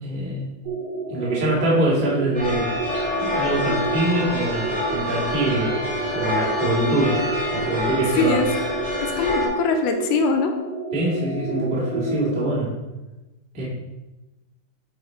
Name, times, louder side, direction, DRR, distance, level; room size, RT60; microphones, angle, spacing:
voice 1, 0.0-0.5 1.1-2.6 3.2-5.8 6.1-7.2 7.5-8.4 10.9-12.7 13.5-13.6, right 1 dB, 20° right, -6 dB, 1.5 m, -24 dB
sound 1, 0.6-12.5, right 4 dB, 60° right, 3.4 m, -31 dB
sound 2, 2.3-9.5, left 2 dB, 5° left, 2.0 m, -27 dB
voice 2, 8.2-8.5 9.0-10.5, left 4 dB, 80° left, 5 dB, 2.1 m, -22 dB
7.7 x 4.2 x 4.9 m, 1.1 s
omnidirectional pair, 3.7 m